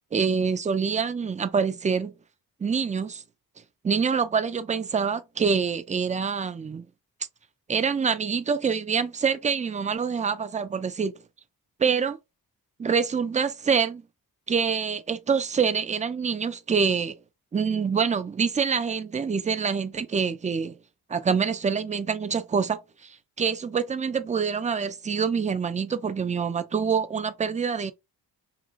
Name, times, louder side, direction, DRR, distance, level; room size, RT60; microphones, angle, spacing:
voice 1, 0.1-2.1 2.6-3.2 3.8-6.9 7.7-11.2 11.8-12.2 12.8-14.0 14.5-17.1 17.5-20.7 21.1-27.9, right 6 dB, 20° right, 0.4 m, -26 dB
2.9 x 2.5 x 2.4 m
supercardioid pair, 50°, 41 cm